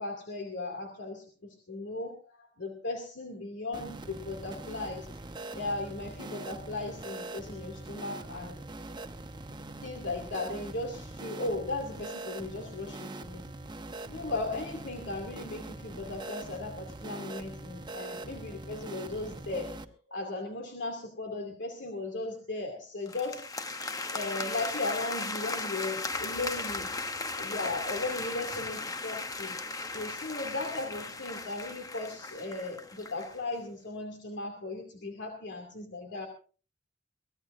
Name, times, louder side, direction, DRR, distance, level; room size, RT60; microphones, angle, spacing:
voice 1, 0.0-5.1 5.5-8.6 9.8-13.4 14.1-23.4 24.1-26.9 27.4-29.6 29.9-36.3, left 2 dB, 75° left, 2 dB, 2.5 m, -37 dB
sound 1, 3.7-19.9, right 2 dB, 25° right, 0.9 m, -43 dB
sound 2, 23.1-33.4, left 3 dB, 20° left, 0.9 m, -37 dB
23.5 x 16.5 x 2.6 m, 0.39 s
head